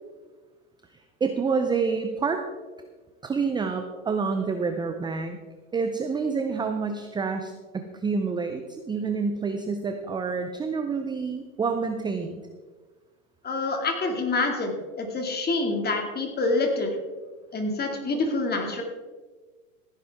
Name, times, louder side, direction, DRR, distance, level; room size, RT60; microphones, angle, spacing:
voice 1, 1.2-2.4 3.2-5.4 5.7-12.4, right 5 dB, 10° right, 6 dB, 0.6 m, -28 dB
voice 2, 13.4-16.9 17.5-18.8, left 3 dB, 20° left, 3 dB, 2.3 m, -26 dB
16.0 x 10.0 x 3.6 m, 1.4 s
hypercardioid pair, 115°, 43 cm